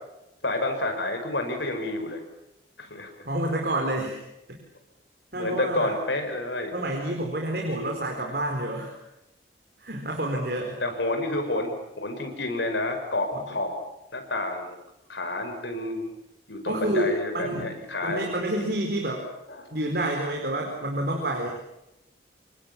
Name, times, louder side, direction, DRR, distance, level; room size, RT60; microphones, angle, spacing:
voice 1, 0.4-2.2 2.8-3.1 5.3-6.7 7.6-8.0 10.3-11.7 12.0-13.7 14.1-14.7 15.1-16.1 16.5-18.2, left 2 dB, 85° left, 6 dB, 5.8 m, -29 dB
voice 2, 3.2-4.2 4.5-4.6 5.3-5.9 6.7-9.0 9.8-10.8 13.3-13.5 16.7-17.7 18.0-19.3 19.7-21.6, right 1 dB, 60° right, 1 dB, 4.6 m, -28 dB
27.5 x 24.0 x 7.3 m, 0.89 s
head